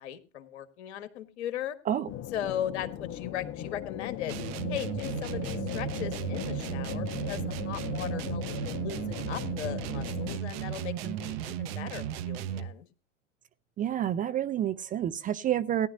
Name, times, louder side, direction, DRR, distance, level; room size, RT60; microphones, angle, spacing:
voice 1, 0.0-1.7 2.3-4.4 4.7-12.8, left 10 dB, 60° left, 1.6 m, -38 dB
sound 1, 2.1-10.4, left 12 dB, 35° left, 1.0 m, -38 dB
sound 2, 4.3-12.8, right 11 dB, 55° right, 1.0 m, -35 dB
voice 2, 13.8-15.9, right 10 dB, 20° right, 0.5 m, -29 dB
17.5 x 11.0 x 2.7 m
figure-of-eight pair, 85°, 37 cm